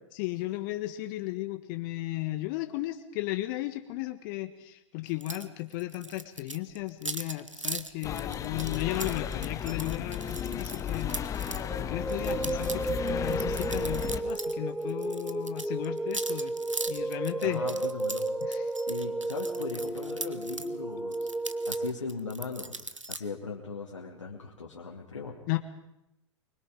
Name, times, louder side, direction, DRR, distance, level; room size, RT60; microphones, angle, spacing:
voice 1, 0.2-16.5 16.9-17.6 18.4-18.7 25.5-25.6, left 17 dB, 45° left, 8 dB, 1.4 m, -35 dB
sound 1, 5.2-5.5 5.7-11.6 12.1-14.6 14.8-20.7 21.1-23.2, right 2 dB, 90° right, 1.1 m, -39 dB
sound 2, 8.0-14.2, left 9 dB, 20° left, 1.1 m, -34 dB
sound 3, 11.7-21.9, right 2 dB, ahead, 0.7 m, -33 dB
voice 2, 17.4-18.3 18.9-21.3 21.7-25.4, left 4 dB, 75° left, -3 dB, 2.5 m, -39 dB
24.0 x 21.5 x 5.2 m, 0.83 s
figure-of-eight pair, 95°, 16 cm